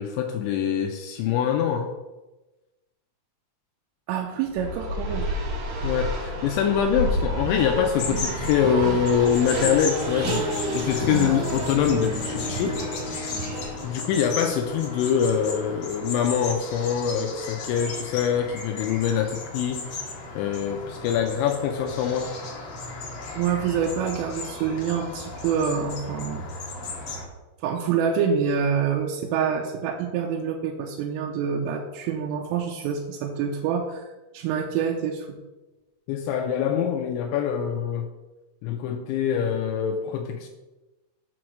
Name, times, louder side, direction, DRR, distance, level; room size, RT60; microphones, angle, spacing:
voice 1, 0.0-1.9 5.8-10.4 10.7-12.8 13.8-22.4 36.1-38.1 38.6-40.5, left 8 dB, 85° left, 4 dB, 2.6 m, -24 dB
voice 2, 4.1-5.3 23.4-26.5 27.6-34.0 34.3-35.3, right 7 dB, 85° right, 1 dB, 3.2 m, -26 dB
Race car auto racing, 4.5-14.1, right 1 dB, 65° right, 2.1 m, -30 dB
sound 1, 8.0-27.2, left 3 dB, 65° left, 1.8 m, -36 dB
Bowed string instrument, 8.8-15.9, left 6 dB, 30° left, 1.0 m, -38 dB
7.9 x 4.5 x 6.2 m, 1.1 s
omnidirectional pair, 5.9 m